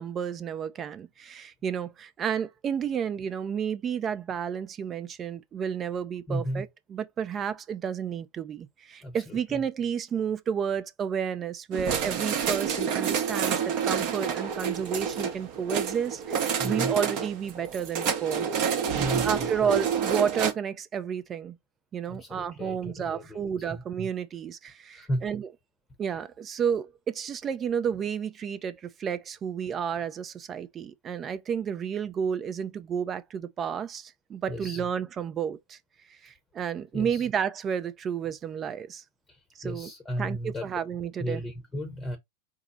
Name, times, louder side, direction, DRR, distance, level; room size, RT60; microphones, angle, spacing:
voice 1, 0.0-18.5 19.2-21.6 21.9-25.5 26.0-35.8 36.1-39.0 39.6-39.9 40.2-41.4, right 7 dB, 25° right, 0.5 m, -31 dB
voice 2, 6.3-6.7 9.0-9.6 16.6-17.0 18.9-19.8 22.1-23.8 24.9-25.3 34.5-34.8 36.9-37.3 39.3-40.7 41.2-42.2, equal, 10° left, 0.8 m, -35 dB
sound 1, 11.7-20.5, right 7 dB, 45° right, 0.9 m, -28 dB
4.7 x 2.0 x 3.7 m
figure-of-eight pair, 95°, 0 cm